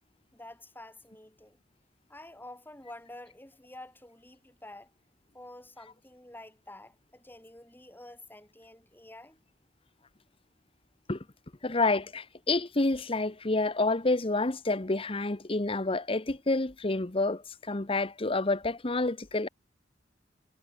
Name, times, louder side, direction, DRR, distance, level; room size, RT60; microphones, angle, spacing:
voice 1, 0.3-1.6 2.1-4.9 5.3-9.4 11.7-11.8, left 1 dB, 10° left, 5.7 m, -49 dB
voice 2, 11.6-17.4 17.7-19.5, left 2 dB, 30° left, 1.1 m, -28 dB
head